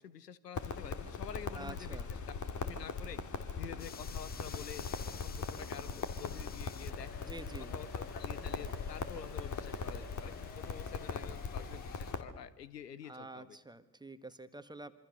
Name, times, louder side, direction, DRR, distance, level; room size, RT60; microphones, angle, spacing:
voice 1, 0.0-2.3 2.6-3.2 3.6-7.2 7.6-13.6, left 9 dB, 80° left, 18 dB, 0.9 m, -48 dB
Crackle, 0.5-12.2, left 5 dB, 40° left, 2.6 m, -40 dB
voice 2, 1.5-2.1 7.2-7.7 13.0-14.9, right 2 dB, 10° right, 11 dB, 1.7 m, -48 dB
sound 1, 3.8-12.1, left 6 dB, 20° left, 0.8 m, -52 dB
27.0 x 25.5 x 6.7 m, 0.95 s
figure-of-eight pair, 50°, 47 cm